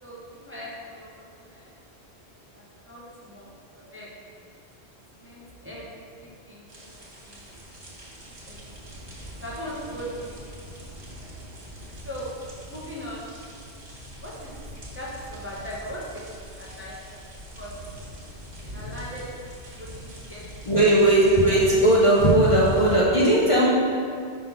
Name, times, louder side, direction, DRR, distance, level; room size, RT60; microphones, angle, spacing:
voice 1, 0.0-1.7 2.5-4.1 5.2-6.9 7.2-7.4 8.3-8.6 9.4-10.4 11.2-11.3 12.0-12.3 12.7-13.3 14.2-14.6 14.9-17.2 17.5-17.7 18.7-20.5, equal, 10° right, -6 dB, 0.9 m, -39 dB
sound 1, 6.7-23.0, equal, 75° right, 1.7 m, -43 dB
voice 2, 20.7-23.7, right 1 dB, 35° left, -6 dB, 0.7 m, -18 dB
5.2 x 3.8 x 5.8 m, 2.2 s
omnidirectional pair, 1.1 m